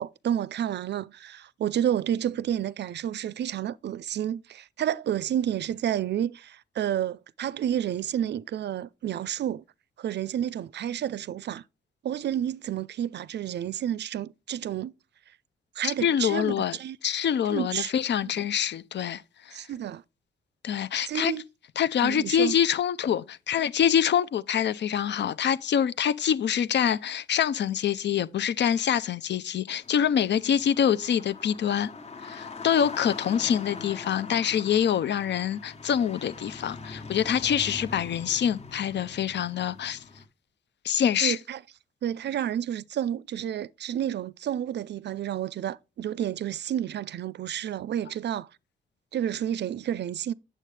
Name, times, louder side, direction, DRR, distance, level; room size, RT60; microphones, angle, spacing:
voice 1, 0.0-9.6 10.0-11.6 12.0-14.9 15.8-17.0 17.5-17.9 18.2-18.3 19.5-20.0 21.1-21.4 22.0-22.5 41.2-41.6 42.0-48.5 49.1-50.3, right 10 dB, 65° right, 0.4 m, -30 dB
voice 2, 15.8-16.8 17.0-19.6 20.6-21.3 21.8-31.9 32.2-40.0 40.8-41.4, left 9 dB, 65° left, 0.6 m, -25 dB
sound 1, 29.8-40.2, left 4 dB, 35° left, 1.2 m, -42 dB
9.1 x 7.5 x 3.3 m
wide cardioid pair, 130°, 19 cm